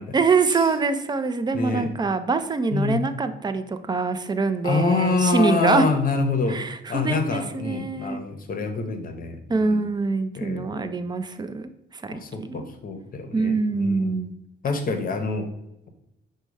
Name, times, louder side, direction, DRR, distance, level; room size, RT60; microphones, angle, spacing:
voice 1, 0.1-5.9 6.5-8.2 9.5-12.7 13.3-14.3, right 4 dB, 20° right, 10 dB, 0.4 m, -24 dB
voice 2, 1.5-1.9 2.7-3.0 4.6-6.6 6.9-9.9 10.4-10.9 12.1-14.2 14.6-15.5, left 4 dB, 45° left, 7 dB, 0.7 m, -26 dB
5.1 x 2.2 x 4.7 m, 0.87 s
cardioid pair, 90°, 20 cm